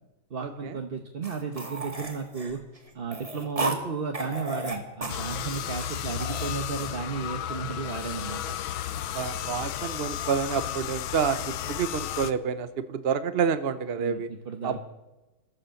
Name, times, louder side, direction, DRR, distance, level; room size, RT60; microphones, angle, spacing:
voice 1, 0.3-2.6 2.9-8.4 14.0-14.8, right 5 dB, 35° right, 4 dB, 1.0 m, -34 dB
sound 1, 1.2-3.8 4.1-6.5, right 2 dB, 20° right, 1.8 m, -34 dB
sound 2, 5.1-12.3, left 11 dB, 90° left, 1.6 m, -33 dB
voice 2, 9.1-11.4 11.7-14.3 14.6-14.8, right 7 dB, 55° right, 12 dB, 0.6 m, -28 dB
13.0 x 13.0 x 7.6 m, 1.1 s
omnidirectional pair, 2.1 m